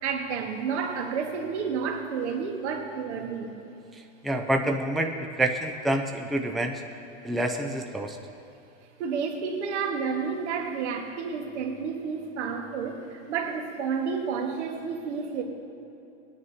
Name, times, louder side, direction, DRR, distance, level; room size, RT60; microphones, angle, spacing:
voice 1, 0.0-3.6 9.0-15.4, right 5 dB, 70° right, 1 dB, 1.7 m, -30 dB
voice 2, 4.2-6.8 7.2-8.2, right 1 dB, ahead, 3 dB, 0.5 m, -27 dB
19.5 x 9.5 x 2.8 m, 2.8 s
hypercardioid pair, 120°, 36 cm